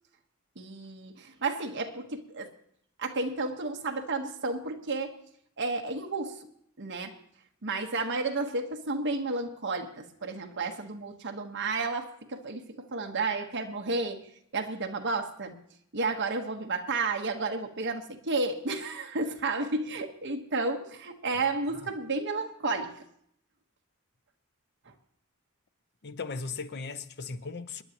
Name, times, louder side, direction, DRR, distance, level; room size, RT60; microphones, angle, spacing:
voice 1, 0.5-2.5 3.0-5.2 5.6-6.5 6.8-7.2 7.6-15.6 15.9-23.0 24.9-25.0, right 3 dB, 55° right, 1.3 m, -32 dB
voice 2, 26.0-27.8, left 4 dB, 50° left, 0.7 m, -37 dB
27.5 x 10.5 x 3.0 m
head